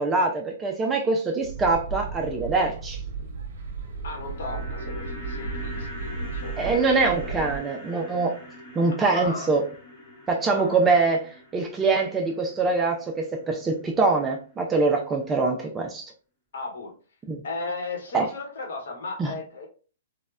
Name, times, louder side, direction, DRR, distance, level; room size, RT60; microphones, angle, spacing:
voice 1, 0.0-3.0 6.6-8.4 8.8-9.6 10.3-16.0 17.3-17.4 18.1-18.3 19.2-19.3, right 3 dB, 15° right, 2 dB, 0.3 m, -24 dB
sound 1, 1.4-7.6, right 4 dB, 60° right, 0.7 m, -35 dB
sound 2, 3.9-14.2 14.4-14.5, left 2 dB, 20° left, 1.0 m, -43 dB
voice 2, 4.0-7.5 9.0-9.5 10.5-10.9 16.5-16.9 17.4-19.7, left 3 dB, 75° left, 1 dB, 0.9 m, -36 dB
3.2 x 2.1 x 2.3 m, 0.38 s
hypercardioid pair, 160°, 0 cm